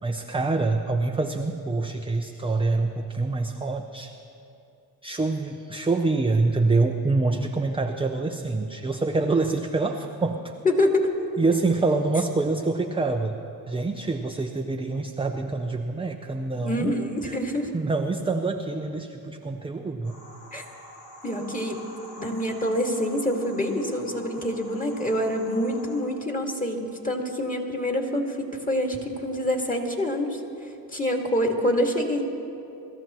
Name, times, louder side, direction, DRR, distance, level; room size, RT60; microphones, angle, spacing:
voice 1, 0.0-4.1 5.0-10.5 11.4-13.4 13.7-16.9 17.2-17.4 17.7-20.2, right 3 dB, 10° right, 4 dB, 0.6 m, -26 dB
voice 2, 10.6-11.1 16.6-17.7 20.5-20.7 21.2-21.8 22.2-30.4 30.9-32.2, left 1 dB, 15° left, 2 dB, 2.2 m, -26 dB
sound 1, 20.0-26.0, equal, 70° left, 3.3 m, -46 dB
24.0 x 13.0 x 3.1 m, 2.8 s
supercardioid pair, 70°, 46 cm